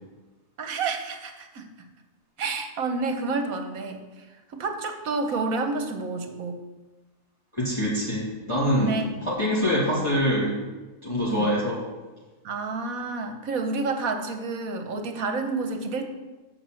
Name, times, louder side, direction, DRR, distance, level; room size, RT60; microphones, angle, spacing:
voice 1, 0.6-1.7 2.4-4.1 4.5-6.6 8.7-9.1 11.3-11.5 12.4-16.1, right 3 dB, 75° right, 5 dB, 1.4 m, -29 dB
voice 2, 7.5-10.6 11.0-11.8, equal, 20° left, -8 dB, 2.1 m, -25 dB
6.6 x 6.4 x 7.5 m, 1.2 s
omnidirectional pair, 1.5 m